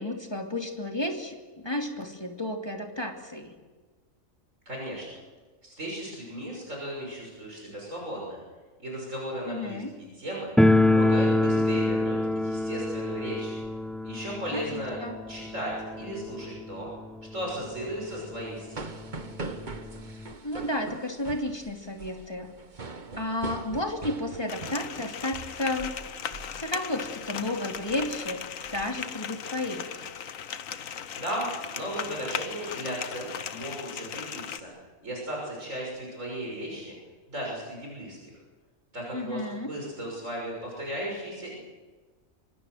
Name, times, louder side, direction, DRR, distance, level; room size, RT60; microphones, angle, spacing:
voice 1, 0.0-1.4 1.6-3.5 9.5-9.9 14.5-15.2 20.4-22.5 23.2-25.9 26.5-28.4 28.7-30.0 39.1-39.7, left 1 dB, 20° left, 2 dB, 2.7 m, -32 dB
voice 2, 4.6-5.1 5.6-8.4 8.8-10.5 10.9-13.6 14.0-15.0 15.3-16.9 17.3-18.9 31.1-34.7 35.0-36.9 37.3-38.3 38.9-41.6, right 1 dB, 65° right, -2 dB, 6.8 m, -36 dB
sound 1, 10.6-17.3 17.5-17.6 17.9-18.0 18.7-18.8 19.1-20.3, left 1 dB, ahead, 0.4 m, -25 dB
sound 2, 18.0-26.0 26.3-26.6 27.0-27.3 27.7-28.9, right 3 dB, 35° right, 1.5 m, -42 dB
sound 3, 24.5-34.6, left 8 dB, 75° left, 1.4 m, -37 dB
26.0 x 24.5 x 6.5 m, 1.3 s
omnidirectional pair, 1.4 m